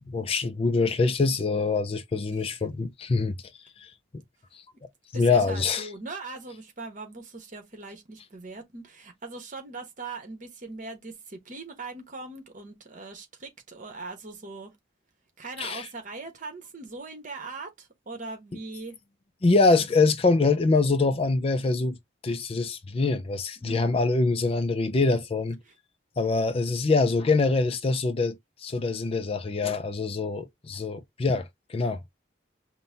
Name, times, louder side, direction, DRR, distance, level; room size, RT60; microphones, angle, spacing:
voice 1, 0.1-3.4 3.8-3.9 5.1-5.9 15.6-15.9 19.4-22.0 22.2-25.6 26.2-32.1, left 3 dB, 30° left, 0.4 m, -24 dB
voice 2, 5.1-14.7 15.4-19.0 23.6-23.9 25.7-25.8, right 3 dB, 45° right, 1.1 m, -40 dB
5.4 x 2.2 x 2.6 m
head